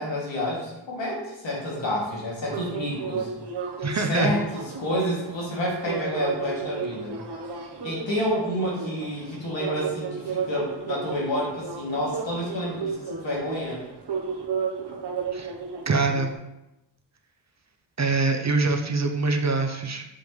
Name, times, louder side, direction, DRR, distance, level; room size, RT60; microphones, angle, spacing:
voice 1, 0.0-3.3 4.1-7.1 7.8-13.0 13.2-13.8, equal, 75° left, -5 dB, 2.4 m, -29 dB
sound 1, 2.5-16.3, right 5 dB, 60° right, 1.0 m, -34 dB
voice 2, 3.8-4.3 15.3-15.5 15.9-16.3 18.0-20.1, right 3 dB, 35° right, 4 dB, 0.6 m, -24 dB
7.4 x 5.1 x 3.2 m, 0.93 s
wide cardioid pair, 125°, 45 cm